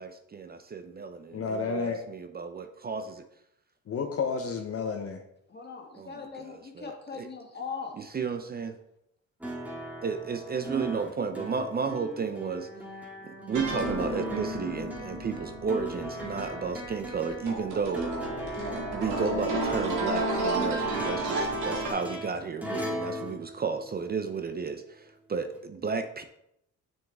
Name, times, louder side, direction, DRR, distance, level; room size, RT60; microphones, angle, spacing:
voice 1, 0.0-3.2 5.9-6.1 6.4-7.3 8.0-8.8 10.0-12.7 13.2-18.1 18.9-26.2, right 5 dB, 30° right, 8 dB, 0.6 m, -33 dB
voice 2, 1.3-2.0 3.9-5.2, left 5 dB, 50° left, 4 dB, 0.8 m, -31 dB
voice 3, 5.5-7.9, left 5 dB, 35° left, 1 dB, 1.8 m, -40 dB
sound 1, 9.4-24.3 25.6-25.7, right 1 dB, 5° right, 1.7 m, -38 dB
sound 2, 13.5-21.9, right 2 dB, 80° right, 2.1 m, -32 dB
7.1 x 6.2 x 3.5 m, 0.79 s
cardioid pair, 90°, 30 cm